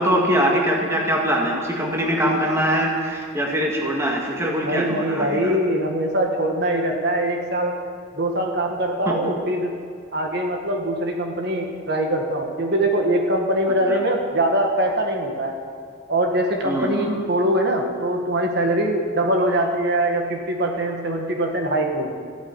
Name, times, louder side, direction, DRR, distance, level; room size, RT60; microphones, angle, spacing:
voice 1, 0.0-5.6 9.1-9.2 13.9-14.0 16.6-17.2, equal, 15° right, -1 dB, 1.9 m, -22 dB
voice 2, 4.6-7.8 8.1-9.8 10.1-15.5 16.1-22.1, right 1 dB, 55° right, 2 dB, 1.8 m, -22 dB
15.0 x 9.6 x 9.7 m, 2.2 s
head